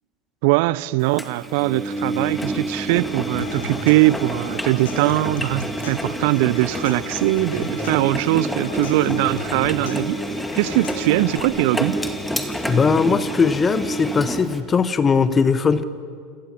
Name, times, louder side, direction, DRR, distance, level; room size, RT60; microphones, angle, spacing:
voice 1, 0.4-10.2 10.5-12.0, right 20 dB, 60° right, 0.6 m, -21 dB
Engine, 1.2-14.6, right 1 dB, 5° left, 2.5 m, -28 dB
Human voice / Acoustic guitar / Percussion, 3.4-11.4, left 4 dB, 75° left, 3.3 m, -36 dB
voice 2, 12.7-15.8, left 5 dB, 25° left, 1.5 m, -19 dB
28.5 x 26.5 x 5.8 m
hypercardioid pair, 80°, 0 cm